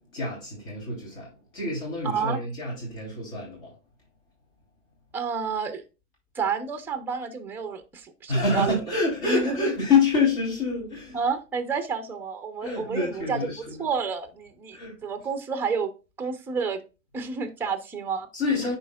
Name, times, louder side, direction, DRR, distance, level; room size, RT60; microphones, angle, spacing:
voice 1, 0.0-3.7 8.3-11.2 12.6-13.8 14.7-15.0 18.3-18.8, left 4 dB, 50° left, 3.3 m, -27 dB
voice 2, 2.0-2.4 5.1-5.8 6.3-8.8 9.2-9.7 11.1-15.9 16.2-16.8 17.1-18.3 18.6-18.8, right 5 dB, 5° right, 0.5 m, -30 dB
10.5 x 4.3 x 2.3 m
hypercardioid pair, 140°, 40 cm